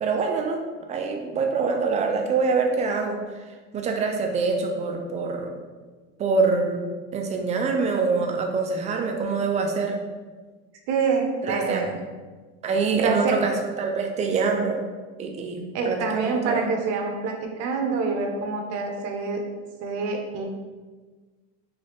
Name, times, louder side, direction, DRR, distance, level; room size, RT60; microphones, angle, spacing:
voice 1, 0.0-0.6 0.9-3.2 3.7-5.5 6.2-6.8 7.1-10.0 11.4-11.8 12.6-14.9 15.2-16.6, right 4 dB, 25° right, 3 dB, 0.3 m, -25 dB
voice 2, 10.9-12.0 12.9-13.5 15.7-19.4 19.8-20.4, right 4 dB, 50° right, 3 dB, 0.7 m, -26 dB
4.0 x 2.3 x 3.3 m, 1.4 s
supercardioid pair, 135°, 32 cm